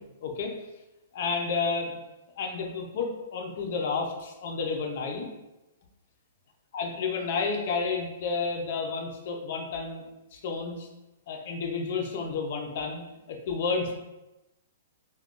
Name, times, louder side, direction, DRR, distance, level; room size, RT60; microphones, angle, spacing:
voice 1, 0.2-0.5 1.1-2.0 2.4-5.3 6.7-10.1 10.3-10.9 11.3-13.9, left 4 dB, 45° left, 2 dB, 0.5 m, -31 dB
2.4 x 2.2 x 3.6 m, 0.98 s
hypercardioid pair, 170°, 0 cm